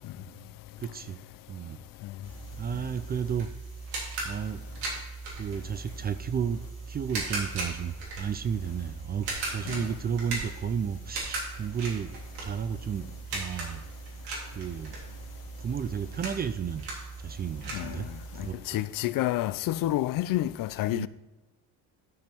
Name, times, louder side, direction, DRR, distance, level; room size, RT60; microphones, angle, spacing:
voice 1, 0.2-1.2 1.5-1.8 2.6-3.5 4.2-4.6 5.3-12.1 12.4-13.9 14.5-15.0 15.6-16.8 17.2-18.9 20.9-21.1, right 7 dB, 25° right, 0.3 m, -33 dB
sound 1, 2.2-18.5, right 3 dB, 90° right, 3.3 m, -38 dB
voice 2, 18.7-21.1, left 15 dB, 65° left, 0.5 m, -28 dB
12.5 x 5.3 x 4.5 m
cardioid pair, 140°, 37 cm